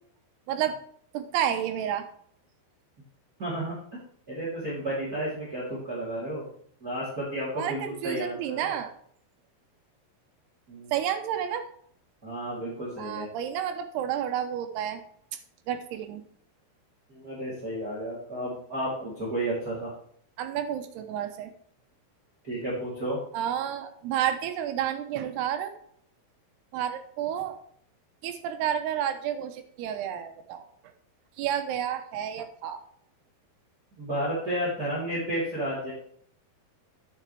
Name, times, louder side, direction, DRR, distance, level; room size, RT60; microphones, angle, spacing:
voice 1, 1.1-2.0 7.5-8.9 10.9-11.6 13.0-15.0 15.7-16.2 20.4-21.5 23.3-25.7 26.7-27.6 28.2-30.6 31.4-32.8, right 10 dB, 80° right, 7 dB, 3.0 m, -30 dB
voice 2, 3.4-3.8 4.3-6.5 6.8-8.7 10.7-10.9 12.2-13.3 17.1-19.9 22.4-23.2 34.0-35.9, right 1 dB, 25° right, -6 dB, 3.0 m, -32 dB
10.0 x 7.6 x 3.3 m, 0.63 s
omnidirectional pair, 4.7 m